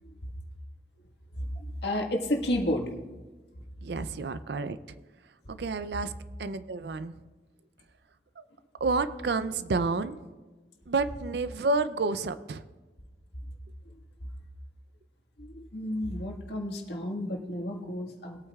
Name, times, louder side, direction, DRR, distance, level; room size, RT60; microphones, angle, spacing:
voice 1, 1.8-3.1 15.4-18.4, left 1 dB, 75° left, 1 dB, 1.7 m, -31 dB
voice 2, 3.8-4.8 5.5-6.1 6.4-7.1 8.4-8.5 8.8-10.3 10.9-12.6, right 3 dB, 70° right, 13 dB, 0.4 m, -30 dB
21.0 x 8.8 x 2.4 m, 1.2 s
head